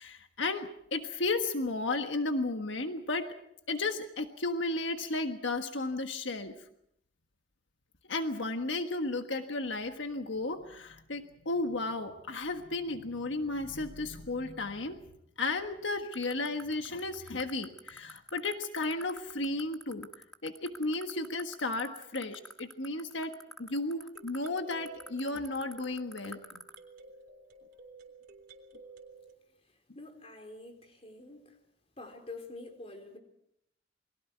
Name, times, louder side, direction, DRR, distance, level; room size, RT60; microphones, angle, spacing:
voice 1, 0.0-3.3 3.7-6.6 8.1-15.0 15.4-20.1 20.4-23.3 23.6-26.6, left 2 dB, 85° left, 6 dB, 1.5 m, -34 dB
sound 1, 16.1-26.8, left 1 dB, 5° left, 1.3 m, -44 dB
sound 2, 24.1-29.3, right 2 dB, 55° right, 3.6 m, -53 dB
voice 2, 29.9-31.6 32.0-33.2, left 2 dB, 35° left, 5 dB, 3.8 m, -47 dB
29.0 x 23.0 x 4.6 m, 0.73 s
head